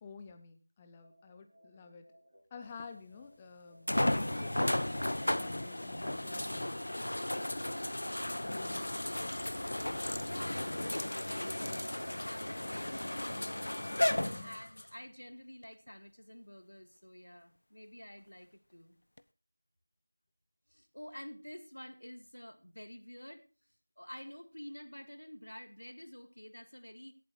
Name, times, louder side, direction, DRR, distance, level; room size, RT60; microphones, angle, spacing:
voice 1, 0.0-2.1 2.5-3.9 4.4-6.8 8.5-8.8 14.2-14.6, left 5 dB, 10° left, 7 dB, 0.6 m, -51 dB
sound 1, 1.0-9.2, equal, 10° right, 6.2 m, -63 dB
sound 2, 2.8-2.9 3.9-14.9 15.6-15.7 19.2-19.3, left 1 dB, 50° left, 0.6 m, -34 dB
voice 2, 7.5-8.6 10.2-13.6 14.4-19.0 20.7-23.4 24.0-27.1, equal, 75° left, 9 dB, 2.0 m, -49 dB
17.0 x 7.7 x 4.5 m, 0.33 s
figure-of-eight pair, 170°, 0 cm